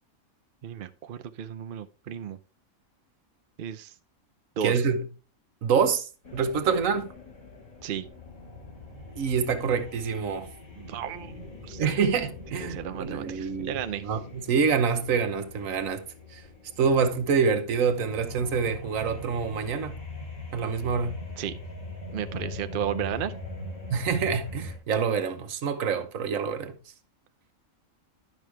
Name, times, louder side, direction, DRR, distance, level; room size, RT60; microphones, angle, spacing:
voice 1, 0.6-2.4 3.6-3.9 4.6-4.8 7.8-8.1 10.7-11.3 11.6-11.8 12.6-14.0 21.4-21.5 22.1-23.3, right 9 dB, 55° right, 0.6 m, -33 dB
voice 2, 4.6-5.0 5.6-7.1 9.1-10.5 11.8-16.0 16.3-16.4 16.8-20.0 20.5-21.2 23.9-26.8, right 6 dB, 75° right, 1.3 m, -26 dB
sound 1, 6.2-16.1 17.7-24.8, left 2 dB, 85° left, 3.8 m, -42 dB
sound 2, 8.0-18.7, left 4 dB, 30° left, 1.3 m, -50 dB
10.5 x 6.2 x 3.3 m
omnidirectional pair, 1.4 m